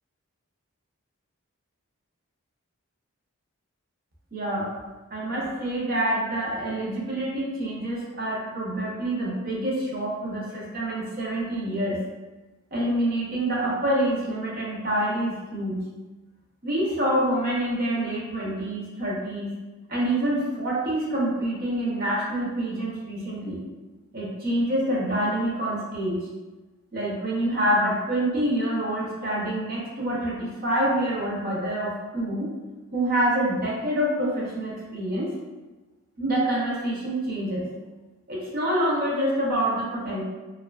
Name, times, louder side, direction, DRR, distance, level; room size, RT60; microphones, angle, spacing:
voice 1, 4.3-4.7 5.1-12.0 12.7-15.8 16.6-19.5 19.9-23.6 24.1-26.3 26.9-32.5 32.9-35.3 36.2-37.7 38.3-40.2, right 1 dB, 45° right, -5 dB, 0.7 m, -26 dB
2.5 x 2.5 x 2.2 m, 1.2 s
head